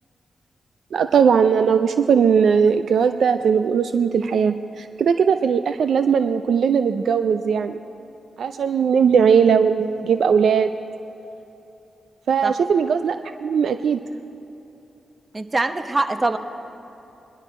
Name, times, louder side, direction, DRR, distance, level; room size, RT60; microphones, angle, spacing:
voice 1, 0.9-7.8 8.4-10.7 12.3-14.0, right 6 dB, 75° right, 9 dB, 0.4 m, -19 dB
voice 2, 15.3-16.4, right 2 dB, 35° right, 8 dB, 1.0 m, -23 dB
20.0 x 12.0 x 4.3 m, 3.0 s
supercardioid pair, 40°, 0 cm